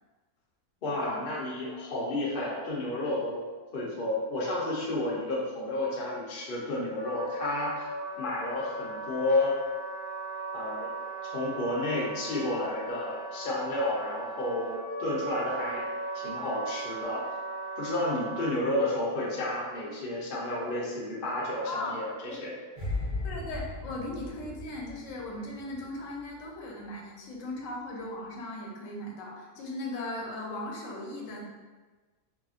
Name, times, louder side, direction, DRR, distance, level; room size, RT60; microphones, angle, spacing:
voice 1, 0.8-3.4 3.7-7.9 8.2-9.5 10.5-10.9 11.2-15.8 16.1-17.2 17.8-22.1 22.4-22.5, left 2 dB, 55° left, -5 dB, 0.6 m, -31 dB
Wind instrument woodwind instrument, 6.9-18.5, right 3 dB, 35° left, 1.4 m, -38 dB
voice 2, 21.7-22.0 22.3-22.4 23.2-31.4, left 2 dB, 70° left, -2 dB, 1.0 m, -38 dB
sound 1, 22.8-26.0 26.2-26.5, left 2 dB, 40° right, 1.1 m, -36 dB
2.7 x 2.6 x 2.4 m, 1.3 s
omnidirectional pair, 1.5 m